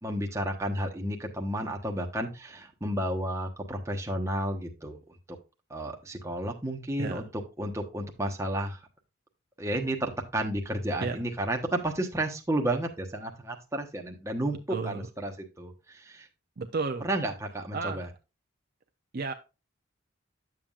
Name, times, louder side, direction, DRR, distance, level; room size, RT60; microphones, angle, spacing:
voice 1, 0.0-5.0 5.7-8.8 9.6-14.6 14.8-16.3 17.0-18.1, right 1 dB, 15° right, 1 dB, 1.1 m, -32 dB
voice 2, 14.7-15.1 16.6-17.1 17.7-18.1 19.1-19.3, right 4 dB, 45° right, 6 dB, 0.5 m, -32 dB
10.0 x 7.2 x 2.4 m, 0.28 s
head